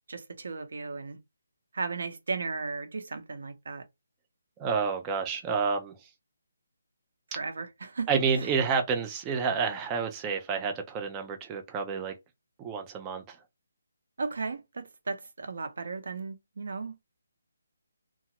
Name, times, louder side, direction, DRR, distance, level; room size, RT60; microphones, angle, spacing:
voice 1, 0.1-1.2 1.7-3.8 7.4-8.1 8.4-8.5 14.2-17.0, right 4 dB, 55° right, 0.7 m, -35 dB
voice 2, 4.6-6.0 8.1-12.1 12.6-13.4, right 5 dB, 10° right, 0.3 m, -29 dB
2.9 x 2.3 x 2.8 m
hypercardioid pair, 180°, 0 cm